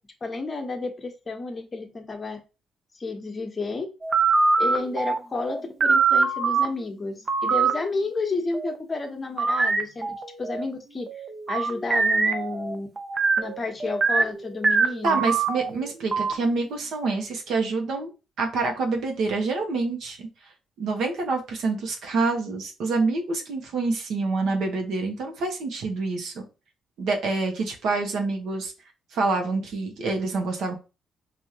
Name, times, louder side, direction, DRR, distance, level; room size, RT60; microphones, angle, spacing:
voice 1, 0.2-2.4 3.0-3.9 4.6-11.1 11.5-12.9 13.4-15.2, left 3 dB, 30° left, 4 dB, 1.0 m, -31 dB
sound 1, 4.0-6.7 7.3-7.7 8.1-8.8 9.4-10.6 11.1-16.3, right 4 dB, 40° right, 0.7 m, -23 dB
voice 2, 15.0-18.1 18.4-20.3 20.8-26.4 27.0-28.7 29.1-30.7, right 3 dB, 75° right, 2 dB, 1.1 m, -27 dB
4.9 x 2.7 x 2.9 m, 0.31 s
cardioid pair, 90°, 0 cm